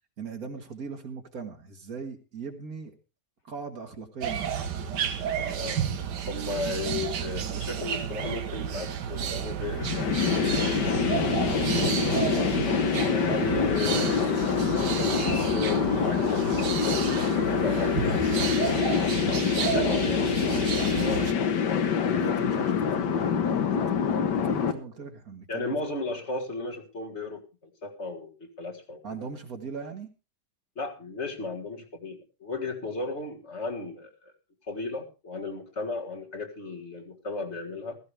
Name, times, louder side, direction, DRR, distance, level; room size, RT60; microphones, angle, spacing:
voice 1, 0.2-3.0 3.4-4.7 11.4-12.5 22.1-25.7 29.0-30.1, right 5 dB, 60° right, 5 dB, 2.1 m, -39 dB
sound 1, 4.2-21.3, right 8 dB, 80° right, 1.7 m, -31 dB
voice 2, 5.4-5.9 6.3-10.1 13.1-14.3 14.6-18.7 19.5-22.0 25.5-29.3 30.8-34.3 34.7-38.0, left 3 dB, 40° left, 2 dB, 2.0 m, -35 dB
sound 2, 9.7-24.7, left 7 dB, 85° left, 1.8 m, -26 dB
15.5 x 14.0 x 3.3 m, 0.30 s
omnidirectional pair, 1.8 m